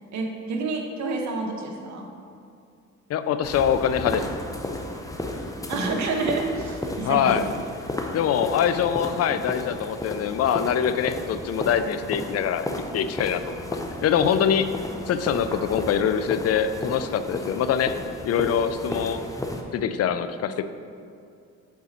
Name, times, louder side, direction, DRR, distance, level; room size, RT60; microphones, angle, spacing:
voice 1, 0.1-2.1 5.7-7.3 9.1-9.3, right 3 dB, 70° right, 2 dB, 1.1 m, -29 dB
voice 2, 3.1-4.4 7.0-7.5 8.1-12.7 12.9-13.6 14.0-14.7 15.1-17.9 18.2-19.2 19.7-20.6, left 8 dB, 55° left, 11 dB, 0.4 m, -24 dB
sound 1, 3.4-19.6, left 1 dB, 10° left, 0.6 m, -33 dB
8.5 x 4.1 x 4.2 m, 2.4 s
cardioid pair, 90°, 30 cm